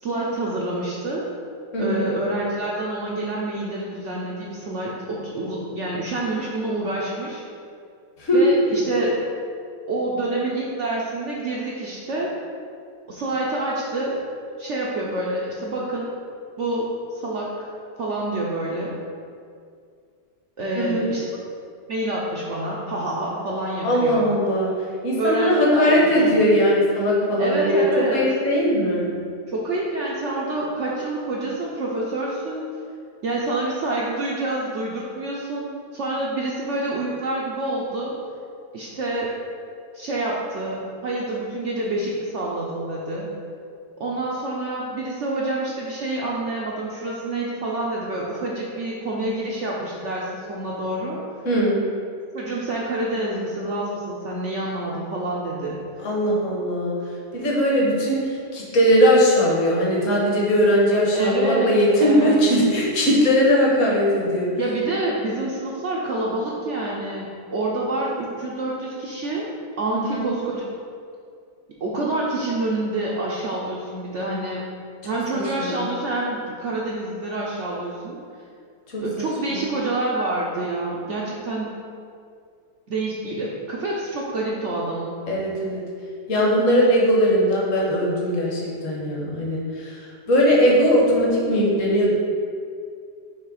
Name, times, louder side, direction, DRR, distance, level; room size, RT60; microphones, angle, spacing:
voice 1, 0.0-1.3 1.8-7.4 8.3-9.4 9.9-12.4 13.1-14.2 14.6-16.1 16.6-17.7 18.0-19.0 20.6-21.2 21.9-24.3 25.2-26.5 27.4-28.2 29.5-32.6 33.2-38.2 38.7-39.3 39.9-43.3 44.0-51.2 52.3-55.8 61.1-62.4 64.6-69.5 69.8-70.7 71.8-74.6 75.0-78.2 79.0-81.8 82.9-85.1, right 2 dB, 65° right, -4 dB, 0.7 m, -27 dB
voice 2, 1.7-2.1 8.2-8.4 20.8-21.1 23.8-24.7 25.0-27.8 28.1-29.1 51.4-51.8 56.0-56.9 57.3-64.5 69.9-70.3 75.3-75.8 78.9-79.6 85.3-85.8 86.3-89.9 90.3-92.1, equal, 50° left, -4 dB, 1.4 m, -20 dB
6.2 x 3.3 x 4.8 m, 2.3 s
omnidirectional pair, 1.9 m